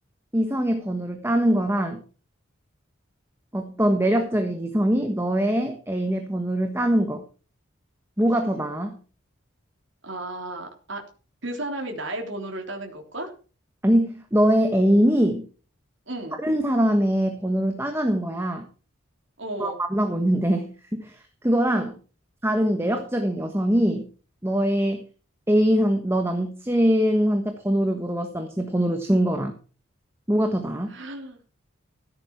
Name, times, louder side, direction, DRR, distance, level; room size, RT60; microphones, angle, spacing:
voice 1, 0.3-2.0 3.5-7.2 8.2-9.0 13.8-15.4 16.4-18.7 19.6-22.0 22.4-24.1 24.4-25.1 25.5-29.5 30.3-30.9, equal, 10° right, 5 dB, 1.4 m, -23 dB
voice 2, 10.0-11.0 11.4-13.3 16.1-16.4 19.4-19.8 30.9-31.4, right 1 dB, 65° right, 2 dB, 3.3 m, -33 dB
15.5 x 8.8 x 4.7 m, 0.37 s
head